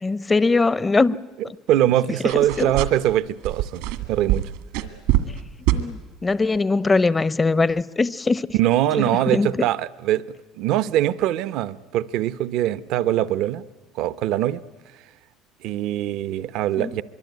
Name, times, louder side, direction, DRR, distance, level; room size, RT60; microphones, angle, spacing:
voice 1, 0.0-1.1 2.3-2.7 5.3-5.4 5.7-8.5 9.3-9.5 16.8-16.9, left 3 dB, 20° left, 0.8 m, -21 dB
voice 2, 1.7-3.8 4.1-4.5 8.5-10.2 10.5-13.7 14.0-14.6 15.6-17.0, right 13 dB, 70° right, 0.8 m, -22 dB
sound 1, 2.3-3.2 3.4-5.4 5.7-5.9, right 14 dB, 85° right, 1.9 m, -23 dB
24.0 x 23.0 x 9.4 m
supercardioid pair, 95°, 0 cm